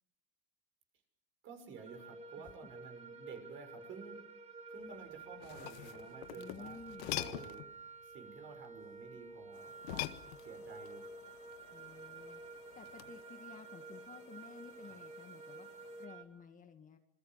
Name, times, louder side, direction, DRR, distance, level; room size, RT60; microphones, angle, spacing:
voice 1, 1.4-4.2 4.7-6.8 7.1-7.7 8.0-10.1 10.4-11.1 14.8-15.0, right 6 dB, 40° right, 6 dB, 6.5 m, -52 dB
sound 1, 1.8-16.2, right 3 dB, 20° right, 3.0 m, -51 dB
sound 2, 5.2-7.7 9.8-10.8 12.9-13.2, left 17 dB, 80° left, 1.6 m, -42 dB
voice 2, 6.3-7.1 11.7-12.4 12.7-17.0, left 6 dB, 25° left, 7 dB, 2.0 m, -54 dB
sound 3, 9.5-16.1, left 12 dB, 45° left, 1.8 m, -62 dB
27.0 x 21.5 x 7.6 m, 0.78 s
supercardioid pair, 135°, 30 cm